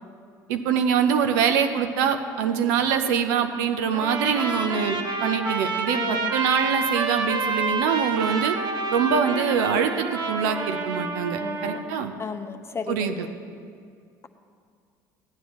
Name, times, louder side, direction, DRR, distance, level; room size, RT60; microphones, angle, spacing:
voice 1, 0.5-8.5 8.9-12.1 12.9-13.3, right 7 dB, 75° right, 7 dB, 0.7 m, -24 dB
Trumpet, 3.9-11.8, right 4 dB, 45° right, 1.0 m, -28 dB
voice 2, 5.9-6.3 11.4-11.8 12.2-13.3, left 5 dB, 25° left, 7 dB, 0.7 m, -34 dB
14.5 x 9.3 x 3.1 m, 2.2 s
hypercardioid pair, 70°, 10 cm